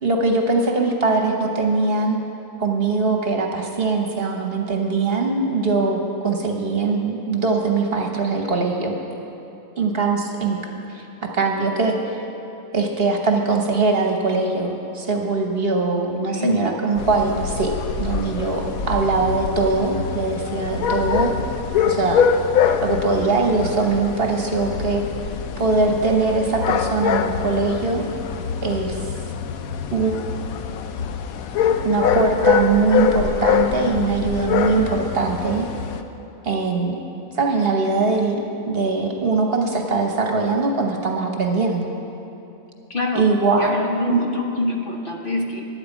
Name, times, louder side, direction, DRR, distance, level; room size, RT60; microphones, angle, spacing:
voice 1, 0.0-2.2 2.6-9.0 9.8-12.2 12.7-21.3 21.9-22.3 22.8-25.0 25.6-28.0 28.6-29.0 29.9-30.1 31.8-35.7 36.4-37.0 37.3-41.9 43.1-43.7 44.1-44.2, right 3 dB, 45° right, 2 dB, 1.2 m, -21 dB
voice 2, 16.2-16.8 42.9-43.3 43.6-45.7, left 2 dB, 45° left, 1 dB, 1.1 m, -25 dB
sound 1, 17.0-36.0, left 7 dB, 85° left, 1.1 m, -24 dB
11.0 x 8.8 x 8.3 m, 2.9 s
omnidirectional pair, 1.4 m